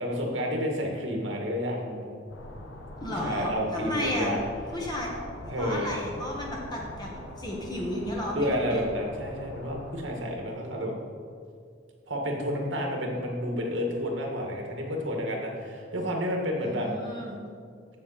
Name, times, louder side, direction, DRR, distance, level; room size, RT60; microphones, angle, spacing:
voice 1, 0.0-2.1 3.1-4.4 5.5-5.9 8.2-10.9 12.1-16.9, equal, 85° right, 0 dB, 1.9 m, -30 dB
sound 1, 2.3-10.0, left 1 dB, 80° left, 1.1 m, -43 dB
voice 2, 3.0-4.4 4.7-5.1 5.6-8.8 16.6-17.4, left 1 dB, 20° left, -2 dB, 1.2 m, -33 dB
14.0 x 6.1 x 4.2 m, 2.2 s
head